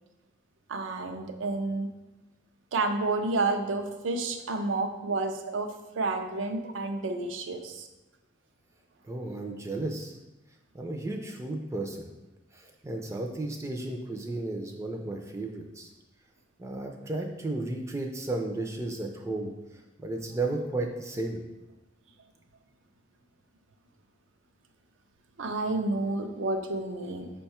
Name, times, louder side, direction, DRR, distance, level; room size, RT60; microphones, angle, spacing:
voice 1, 0.7-1.9 2.7-5.7 6.0-7.9 25.4-27.3, right 3 dB, 80° right, 6 dB, 0.5 m, -30 dB
voice 2, 9.0-10.2 10.7-12.1 12.5-15.9 16.6-21.4, right 2 dB, 15° right, 3 dB, 0.3 m, -34 dB
5.5 x 2.2 x 4.2 m, 1.0 s
head